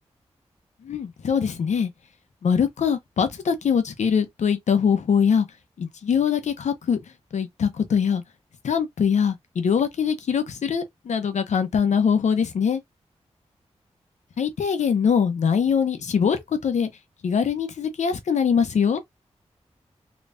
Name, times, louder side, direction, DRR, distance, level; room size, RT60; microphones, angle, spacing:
voice 1, 0.8-1.9 2.4-5.5 5.8-7.0 7.3-8.2 8.6-12.8 14.4-16.9 17.2-19.0, left 7 dB, 90° left, 0.7 m, -22 dB
3.3 x 3.0 x 2.5 m
cardioid pair, 55°, 12 cm